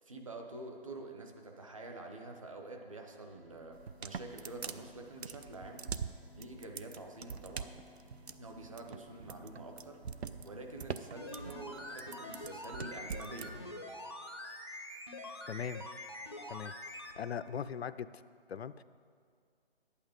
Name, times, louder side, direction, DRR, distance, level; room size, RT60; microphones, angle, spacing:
voice 1, 0.0-5.8 6.4-7.7 8.4-13.7, right 2 dB, 30° right, 3 dB, 0.8 m, -47 dB
sound 1, 2.9-12.6, left 2 dB, 65° right, 2.7 m, -58 dB
sound 2, 3.7-13.5, right 6 dB, 85° right, 0.6 m, -43 dB
sound 3, 11.2-17.2 17.5-17.6, left 1 dB, 25° left, 0.4 m, -45 dB
voice 2, 15.5-15.8 16.5-16.7 17.2-18.2 18.5-18.8, left 7 dB, 80° left, 14 dB, 0.5 m, -39 dB
10.5 x 8.5 x 5.1 m, 2.1 s
hypercardioid pair, 170°, 31 cm